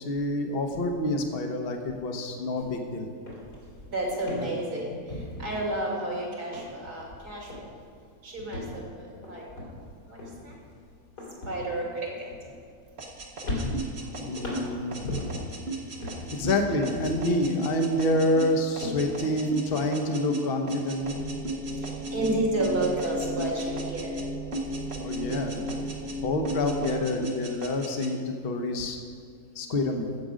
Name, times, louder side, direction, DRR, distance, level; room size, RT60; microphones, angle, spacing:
voice 1, 0.0-3.1 5.1-5.3 14.1-15.2 16.3-21.2 24.9-29.0 29.5-30.1, left 1 dB, 40° left, 4 dB, 1.1 m, -28 dB
sound 1, 2.6-2.8 3.1-6.1 6.4-7.2 7.5-7.9 8.4-13.1 13.4-15.6 16.0-17.4 17.8-19.8, left 1 dB, 75° left, 3.3 m, -38 dB
voice 2, 3.9-5.0 5.4-7.5 8.2-8.8 9.3-9.4 10.4-10.5 11.5-11.9 22.1-24.1, right 1 dB, 65° right, -3 dB, 3.0 m, -30 dB
sound 2, 13.0-22.3 22.6-24.3 24.5-26.2 26.5-28.1, right 3 dB, 45° right, 1.2 m, -37 dB
sound 3, 21.0-27.0, equal, 15° right, 1.1 m, -35 dB
15.0 x 6.9 x 5.1 m, 2.2 s
omnidirectional pair, 1.8 m